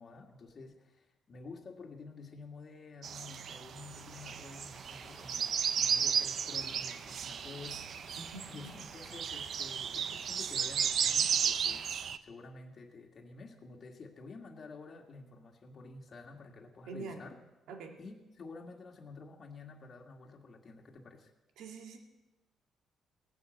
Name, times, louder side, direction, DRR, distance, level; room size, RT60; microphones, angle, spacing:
voice 1, 0.0-8.2 8.5-17.4 18.0-21.3, left 3 dB, 45° left, 1 dB, 2.0 m, -50 dB
sound 1, 3.0-12.2, right 7 dB, 60° right, 0.7 m, -34 dB
sound 2, 3.9-12.0, right 1 dB, 20° right, 3.9 m, -56 dB
voice 2, 8.3-8.8 16.9-17.2 17.7-18.0 21.6-22.0, right 4 dB, 85° right, 3 dB, 2.1 m, -45 dB
17.5 x 9.5 x 7.8 m, 1.1 s
cardioid pair, 90°, 0 cm